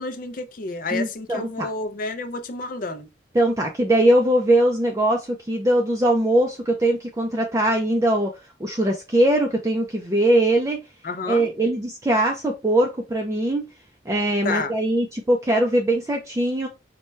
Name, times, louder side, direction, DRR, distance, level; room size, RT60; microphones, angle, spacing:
voice 1, 0.0-3.1 11.0-11.5 14.4-14.7, left 3 dB, 45° left, 0.4 m, -30 dB
voice 2, 0.9-1.7 3.3-10.8 11.3-13.7 14.1-16.7, right 1 dB, 15° right, 0.4 m, -21 dB
4.3 x 2.2 x 3.1 m
head